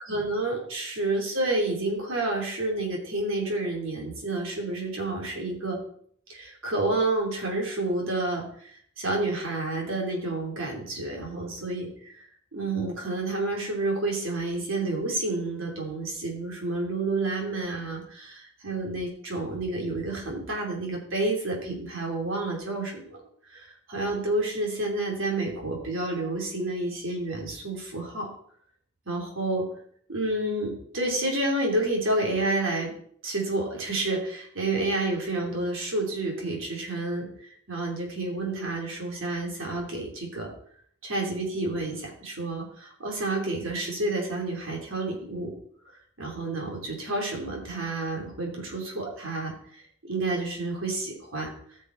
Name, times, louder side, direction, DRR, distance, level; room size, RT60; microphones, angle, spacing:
voice 1, 0.0-5.8 6.3-23.2 23.5-28.3 29.1-29.6 30.1-32.9 33.2-40.5 41.0-45.5 46.2-51.5, right 2 dB, 75° right, 0 dB, 3.1 m, -30 dB
15.5 x 6.4 x 4.0 m, 0.63 s
head